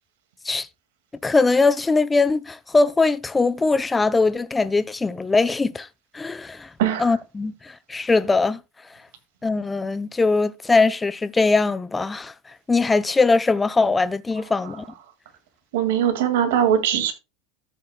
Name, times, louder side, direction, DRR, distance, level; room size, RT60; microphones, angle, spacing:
voice 1, 1.2-5.9 6.1-6.7 7.0-8.6 9.4-12.3 12.7-14.8, left 3 dB, 15° left, 0.5 m, -21 dB
voice 2, 6.8-7.1 15.7-17.1, right 9 dB, 75° right, 2.0 m, -21 dB
13.5 x 6.5 x 2.2 m
hypercardioid pair, 100°, 0 cm